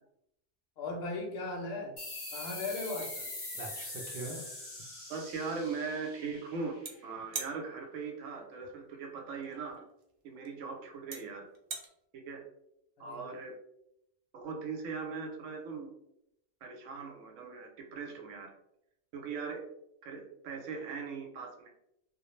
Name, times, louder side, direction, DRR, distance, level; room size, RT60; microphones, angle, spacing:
voice 1, 0.8-1.9 2.3-3.3 13.0-13.3, left 3 dB, 65° left, 2 dB, 0.7 m, -38 dB
sound 1, 2.0-7.1, left 2 dB, 25° left, 0.6 m, -43 dB
sound 2, 3.0-3.1 3.4-4.8 6.8-6.9 7.3-7.6 9.4-9.5 10.4-10.5 11.1-11.2 11.5-11.9, right 4 dB, 60° right, 0.5 m, -40 dB
voice 2, 5.1-6.8 7.0-9.8 10.2-11.5 12.1-12.4 13.0-13.5 14.3-15.9 16.6-18.5 19.1-19.6 20.0-21.7, right 5 dB, 85° right, 2 dB, 0.9 m, -40 dB
2.2 x 2.0 x 2.9 m, 0.79 s
omnidirectional pair, 1.2 m